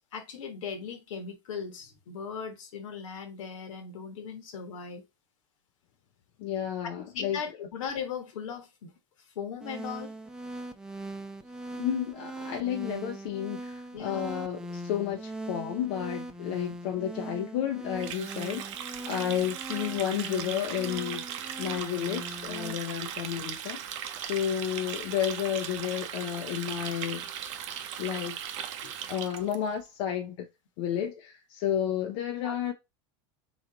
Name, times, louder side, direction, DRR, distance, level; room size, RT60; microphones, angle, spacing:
voice 1, 0.1-5.0 7.1-8.9 9.2-10.1 13.9-14.3 16.7-16.8 19.2-19.4 28.8-29.3 32.4-32.7, left 6 dB, 80° left, 1.3 m, -39 dB
voice 2, 6.4-7.4 11.7-18.8 19.1-21.2 21.6-23.9 24.2-27.2 28.0-28.4 29.1-30.5 30.8-32.7, left 10 dB, 60° left, 0.7 m, -31 dB
sound 1, 9.6-22.7, right 1 dB, 5° right, 0.6 m, -41 dB
Water tap faucet, 18.0-29.5, right 9 dB, 70° right, 0.8 m, -38 dB
4.0 x 3.1 x 3.8 m
supercardioid pair, 110°, 16 cm